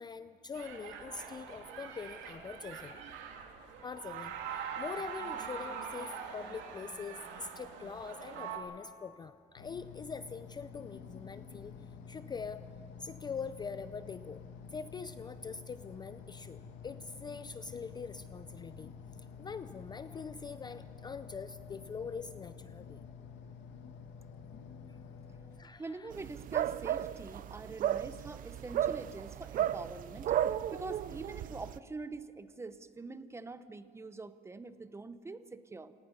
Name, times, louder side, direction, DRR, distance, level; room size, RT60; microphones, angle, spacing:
voice 1, 0.0-3.0 3.8-11.8 12.1-12.7 13.0-14.4 14.7-18.9 19.4-23.0 24.9-25.0 25.6-26.1, left 5 dB, 20° left, 12 dB, 0.4 m, -43 dB
sound 1, 0.5-8.6, right 6 dB, 85° right, 2.7 m, -43 dB
sound 2, 9.6-25.6, left 6 dB, 85° left, 1.7 m, -50 dB
voice 2, 25.8-35.9, right 3 dB, 15° right, 12 dB, 0.7 m, -45 dB
sound 3, 26.1-31.8, right 11 dB, 45° right, 0.4 m, -34 dB
27.0 x 19.0 x 5.5 m, 2.2 s
cardioid pair, 150°, 19 cm